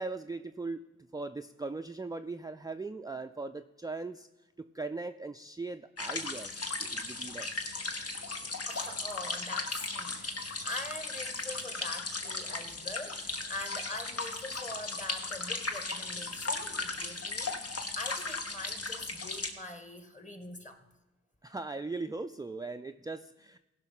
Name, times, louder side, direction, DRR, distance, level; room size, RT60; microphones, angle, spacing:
voice 1, 0.0-4.3 4.6-7.7 21.4-23.6, right 3 dB, 15° right, 7 dB, 0.4 m, -39 dB
sound 1, 6.0-19.5, left 3 dB, 55° left, 1.3 m, -36 dB
voice 2, 8.7-20.9, left 2 dB, 25° left, 8 dB, 1.7 m, -43 dB
15.5 x 5.6 x 5.7 m, 1.0 s
cardioid pair, 45°, 29 cm